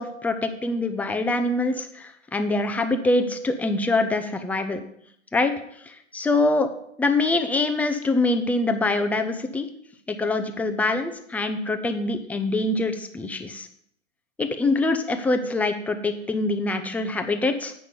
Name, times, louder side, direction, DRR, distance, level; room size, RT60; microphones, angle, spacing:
voice 1, 0.0-4.8 5.3-5.5 5.9-6.7 7.0-9.7 10.1-13.7 14.4-17.8, left 2 dB, 5° left, 7 dB, 0.5 m, -24 dB
8.5 x 6.0 x 5.2 m, 0.70 s
hypercardioid pair, 125°, 37 cm